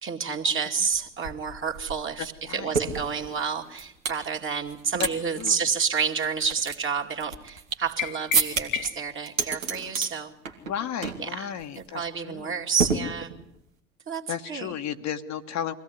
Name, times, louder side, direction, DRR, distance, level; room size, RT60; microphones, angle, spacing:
voice 1, 0.0-10.3 11.2-11.5 11.8-13.3 14.1-14.7, right 6 dB, 30° right, 2 dB, 2.5 m, -29 dB
sound 1, 0.9-1.0 1.2-4.2 4.7-5.1 5.4-5.5 6.0-7.9 8.3-8.9 9.3-10.1 10.5-10.8 11.0-11.3 11.6-11.8 12.8-13.6, right 5 dB, 90° right, 2.2 m, -29 dB
sound 2, 8.0-9.2, left 11 dB, 80° left, 1.6 m, -33 dB
voice 2, 10.6-12.5 12.9-13.0 14.3-15.8, left 9 dB, 45° left, 7 dB, 1.3 m, -33 dB
23.0 x 16.5 x 9.5 m, 0.77 s
hypercardioid pair, 75°, 39 cm